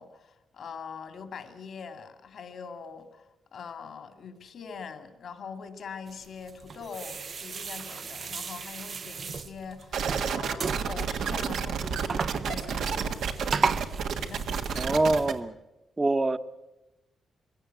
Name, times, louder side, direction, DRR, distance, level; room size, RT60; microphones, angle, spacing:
voice 1, 0.0-3.2 3.5-13.0 14.2-14.5, left 6 dB, 65° left, 2.4 m, -43 dB
sound 1, 6.1-15.4, right 5 dB, 50° right, 0.7 m, -35 dB
sound 2, 9.9-15.3, right 6 dB, 90° right, 1.6 m, -30 dB
voice 2, 14.8-15.5 16.0-16.4, right 2 dB, 20° right, 1.0 m, -24 dB
22.0 x 17.0 x 9.2 m
cardioid pair, 105°, 0 cm